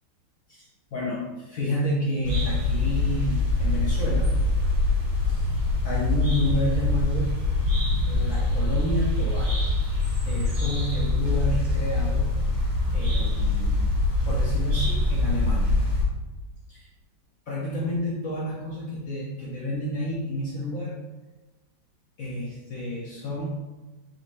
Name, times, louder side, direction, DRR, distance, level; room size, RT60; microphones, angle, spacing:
voice 1, 0.5-4.3 5.3-5.4 5.8-7.4 8.1-9.6 10.3-12.3 12.9-13.9 14.2-15.8 16.7-16.9 17.5-20.9 22.2-23.6, left 1 dB, 70° left, -4 dB, 0.8 m, -30 dB
sound 1, 2.2-16.0, left 2 dB, 70° right, 1.9 m, -24 dB
4.3 x 4.0 x 2.5 m, 1.1 s
omnidirectional pair, 2.1 m